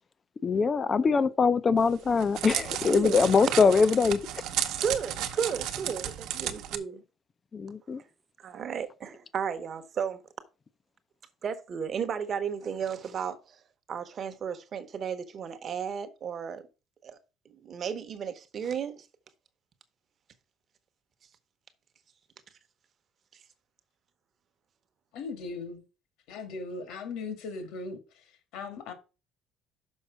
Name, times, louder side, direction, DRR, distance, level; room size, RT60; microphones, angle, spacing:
voice 1, 0.4-4.2 7.5-8.0, left 5 dB, 20° left, 0.5 m, -23 dB
Crackle, 1.8-6.8, right 11 dB, 65° right, 0.9 m, -33 dB
voice 2, 2.9-3.8 4.8-7.0 8.4-10.2 11.4-13.6 13.9-16.7 17.0-17.2 17.4-19.1, right 7 dB, 30° right, 0.9 m, -34 dB
voice 3, 25.1-25.8 26.3-28.9, left 4 dB, 70° left, 2.0 m, -38 dB
6.3 x 5.3 x 5.8 m
cardioid pair, 175°, 0 cm